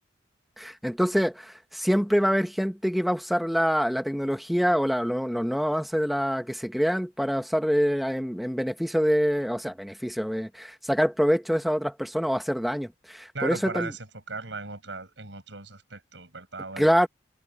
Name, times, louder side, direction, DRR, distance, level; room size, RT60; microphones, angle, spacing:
voice 1, 0.6-13.9 16.8-17.1, equal, ahead, 1.4 m, -25 dB
voice 2, 13.3-16.9, right 3 dB, 75° right, 5.9 m, -37 dB
head